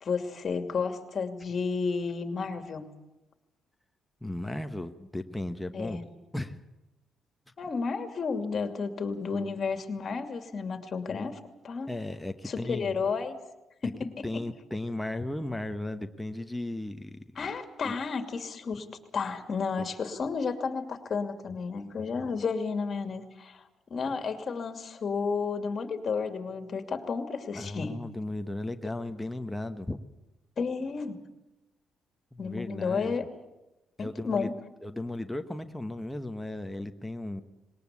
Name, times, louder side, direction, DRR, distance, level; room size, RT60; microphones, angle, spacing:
voice 1, 0.0-2.8 5.7-6.0 7.6-11.9 12.4-13.4 13.8-14.2 17.4-18.9 19.1-23.6 23.9-27.9 30.6-31.2 32.4-33.3 34.0-34.5, left 5 dB, 45° left, 7 dB, 2.6 m, -32 dB
voice 2, 4.2-6.0 6.3-6.6 9.3-9.6 11.1-11.3 11.9-13.0 14.0-17.5 17.8-17.9 19.8-19.9 27.5-30.0 32.3-33.2 34.0-34.5 34.8-37.4, left 1 dB, 5° left, 6 dB, 1.2 m, -36 dB
21.0 x 18.5 x 8.5 m, 0.98 s
cardioid pair, 90°, 0 cm